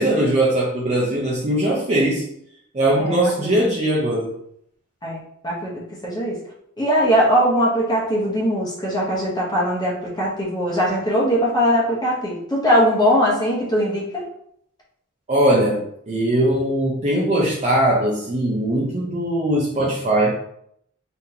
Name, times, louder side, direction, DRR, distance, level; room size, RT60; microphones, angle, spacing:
voice 1, 0.0-2.3 2.7-4.3 15.3-20.3, right 1 dB, 30° right, -3 dB, 0.6 m, -20 dB
voice 2, 3.0-3.5 5.0-6.4 6.8-14.2, equal, 20° left, -4 dB, 0.9 m, -20 dB
4.0 x 3.6 x 2.8 m, 0.71 s
head